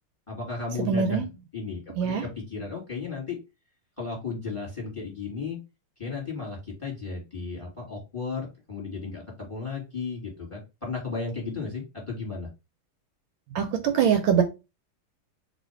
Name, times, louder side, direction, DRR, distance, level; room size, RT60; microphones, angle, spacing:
voice 1, 0.3-1.2 1.5-3.4 4.0-5.6 6.0-9.2 9.5-12.5, left 4 dB, 15° left, -1 dB, 1.4 m, -34 dB
voice 2, 0.8-1.3 2.0-2.3 13.5-14.4, right 7 dB, 75° right, 7 dB, 1.3 m, -23 dB
3.1 x 2.7 x 4.3 m, 0.26 s
omnidirectional pair, 2.3 m